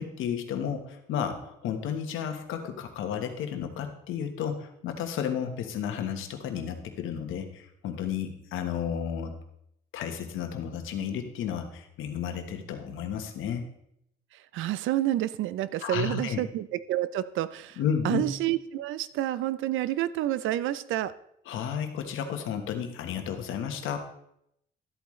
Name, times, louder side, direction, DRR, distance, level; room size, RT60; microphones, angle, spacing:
voice 1, 0.0-9.4 9.9-13.6 15.8-16.4 17.8-18.2 21.5-24.1, left 8 dB, 85° left, 6 dB, 1.3 m, -32 dB
voice 2, 14.5-17.8 18.0-21.1, right 13 dB, 85° right, 16 dB, 0.5 m, -29 dB
12.5 x 8.4 x 3.2 m, 0.75 s
cardioid pair, 90°, 20 cm